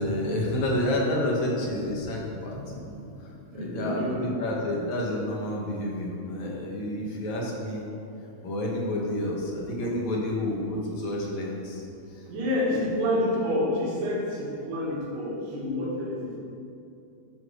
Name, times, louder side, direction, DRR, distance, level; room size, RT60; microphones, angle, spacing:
voice 1, 0.0-3.3 3.5-7.8 8.4-11.8, left 1 dB, 55° left, -2 dB, 2.7 m, -29 dB
voice 2, 3.5-4.3 12.3-16.4, left 1 dB, 90° right, -6 dB, 4.1 m, -28 dB
13.0 x 6.2 x 6.5 m, 2.6 s
omnidirectional pair, 4.6 m